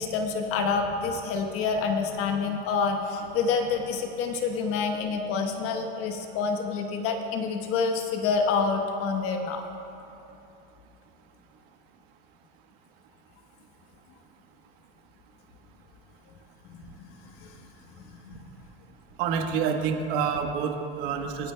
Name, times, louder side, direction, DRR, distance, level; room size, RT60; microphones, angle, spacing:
voice 1, 0.0-9.6 16.7-17.5 18.0-18.5, left 5 dB, 45° left, 4 dB, 1.2 m, -28 dB
voice 2, 19.2-21.5, right 6 dB, 60° right, 4 dB, 1.4 m, -27 dB
26.5 x 8.9 x 2.3 m, 2.8 s
supercardioid pair, 125°, 31 cm